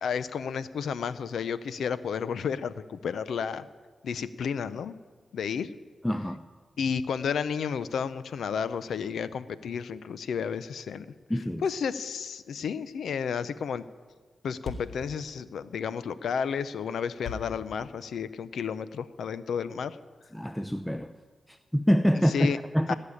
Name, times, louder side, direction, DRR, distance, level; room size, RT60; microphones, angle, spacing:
voice 1, 0.0-3.7 4.0-4.9 5.3-5.7 6.8-11.1 11.6-13.8 14.4-20.0 22.3-22.6 22.9-23.0, left 6 dB, 85° left, 0.6 m, -32 dB
voice 2, 6.0-6.4 11.3-11.6 20.3-21.1 21.5-22.9, equal, 5° left, 0.7 m, -26 dB
Thump thud, 14.0-14.1 14.3-14.4 14.6-18.6, left 4 dB, 70° left, 2.5 m, -42 dB
18.0 x 6.8 x 9.9 m
cardioid pair, 50°, 0 cm